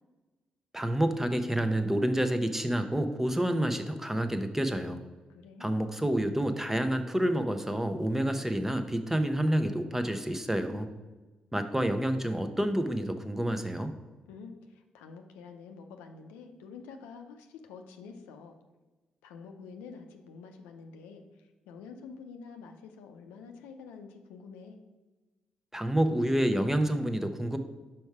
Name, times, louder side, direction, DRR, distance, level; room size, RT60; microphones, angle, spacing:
voice 1, 0.7-5.0 5.6-10.9 11.5-13.9 25.7-27.6, right 1 dB, 10° right, 8 dB, 0.8 m, -28 dB
voice 2, 5.3-5.8 14.3-18.6 19.2-24.8, left 5 dB, 90° left, 5 dB, 0.5 m, -48 dB
5.3 x 4.6 x 4.7 m, 1.2 s
supercardioid pair, 45°, 3 cm